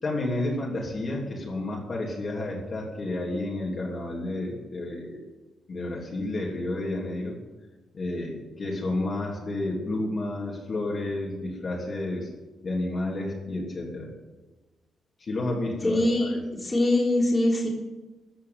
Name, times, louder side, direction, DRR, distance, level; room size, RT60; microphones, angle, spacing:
voice 1, 0.0-5.2 5.7-7.4 7.9-12.3 12.6-14.1 15.2-16.4, left 2 dB, 35° left, -3 dB, 3.1 m, -31 dB
voice 2, 15.8-17.7, left 1 dB, 15° left, -4 dB, 3.4 m, -23 dB
14.5 x 8.4 x 9.6 m, 1.2 s
wide cardioid pair, 165°, 0 cm